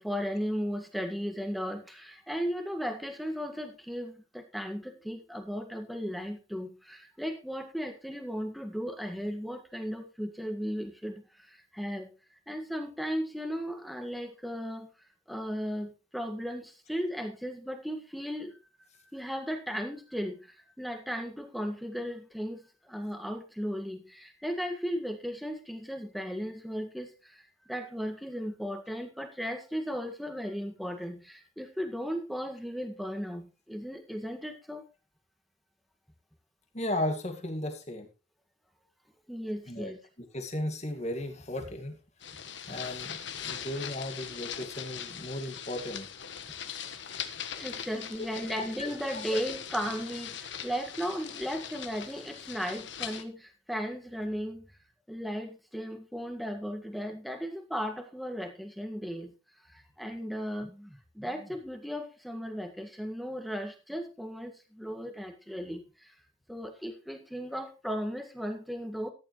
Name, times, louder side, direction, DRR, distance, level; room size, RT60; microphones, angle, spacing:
voice 1, 0.0-11.2 11.7-12.1 12.5-14.9 15.3-18.5 19.1-20.4 20.8-22.6 22.9-27.1 27.7-34.8 39.3-40.0 47.6-50.3 50.6-53.4 53.7-54.6 55.1-59.3 60.0-60.9 61.2-64.5 64.8-65.8 66.5-69.1, equal, ahead, 5 dB, 1.8 m, -36 dB
voice 2, 36.7-38.1 39.7-39.9 40.3-42.0 42.7-43.2 43.4-46.1 48.2-48.3 48.5-49.4, left 1 dB, 35° left, 5 dB, 2.2 m, -35 dB
sound 1, 42.2-53.2, left 8 dB, 60° left, 1.3 m, -41 dB
14.0 x 10.5 x 3.2 m, 0.31 s
head